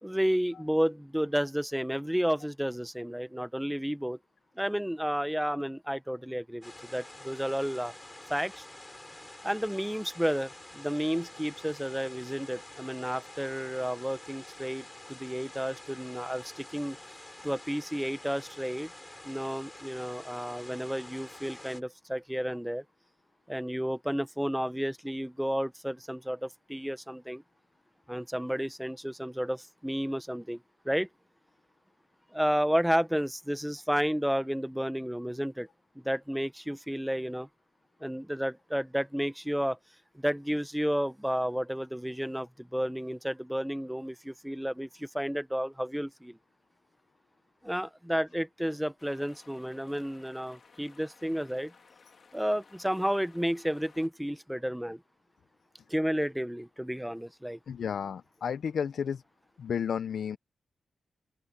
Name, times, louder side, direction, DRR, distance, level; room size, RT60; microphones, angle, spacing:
voice 1, 0.0-4.2 4.6-7.9 8.3-8.6 9.4-17.0 17.4-18.9 19.2-22.8 23.5-27.4 28.1-31.1 32.3-35.7 36.0-37.5 38.0-39.8 40.1-46.4 47.6-51.7 52.3-55.0 55.9-57.6, equal, 5° right, 1.1 m, -31 dB
sound 1, 6.6-21.8, left 1 dB, 15° left, 7.1 m, -48 dB
sound 2, 49.0-54.1, left 5 dB, 55° left, 2.5 m, -58 dB
voice 2, 57.7-59.2 59.6-60.4, left 7 dB, 75° left, 0.7 m, -32 dB
open air
wide cardioid pair, 105°, 0 cm